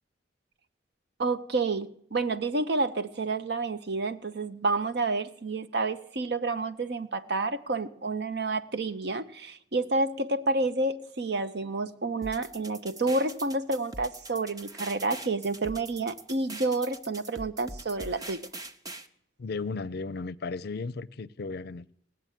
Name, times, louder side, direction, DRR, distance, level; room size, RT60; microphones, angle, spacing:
voice 1, 1.2-18.4, right 3 dB, 65° right, 0.8 m, -29 dB
sound 1, 12.2-19.1, right 2 dB, 20° right, 0.8 m, -43 dB
voice 2, 19.4-21.9, left 4 dB, 60° left, 0.5 m, -35 dB
18.5 x 7.7 x 9.2 m
head